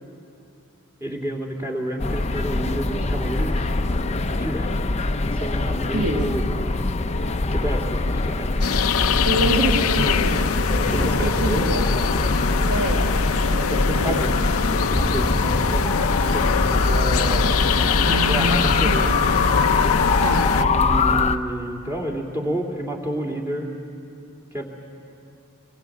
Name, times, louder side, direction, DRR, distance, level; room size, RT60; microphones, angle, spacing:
voice 1, 1.0-3.7 4.3-4.8 5.3-6.4 7.5-8.5 10.9-12.4 13.6-18.0 18.3-19.2 20.6-23.8 24.5-24.6, right 1 dB, 10° right, -1 dB, 2.7 m, -30 dB
sound 1, 2.0-21.4, left 2 dB, 30° left, 0.6 m, -23 dB
sound 2, 8.6-20.6, left 7 dB, 80° left, 0.6 m, -24 dB
voice 2, 9.2-10.4 10.9-11.9 12.7-13.1 13.5-14.2 18.1-19.0 20.2-20.5, right 1 dB, 80° right, 0 dB, 1.8 m, -27 dB
sound 3, 10.3-16.3 16.5-17.4, equal, 10° left, 1.9 m, -32 dB
25.0 x 21.0 x 8.5 m, 2.7 s
head